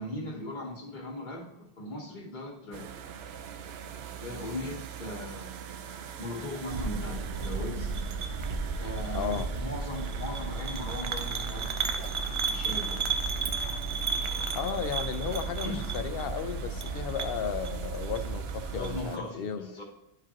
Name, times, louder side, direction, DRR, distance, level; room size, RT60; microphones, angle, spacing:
voice 1, 0.0-2.9 4.2-5.6 6.2-7.9 8.8-11.7 12.5-13.0 15.6-15.8 18.7-19.8, left 1 dB, 50° left, 1 dB, 1.2 m, -38 dB
sound 1, 2.7-19.2, right 7 dB, 75° right, 0.8 m, -43 dB
sound 2, 6.7-19.0, right 4 dB, 55° right, 0.3 m, -33 dB
voice 2, 9.1-9.5 14.5-19.7, left 7 dB, 70° left, 9 dB, 0.8 m, -34 dB
11.0 x 4.8 x 2.9 m, 0.82 s
omnidirectional pair, 1.1 m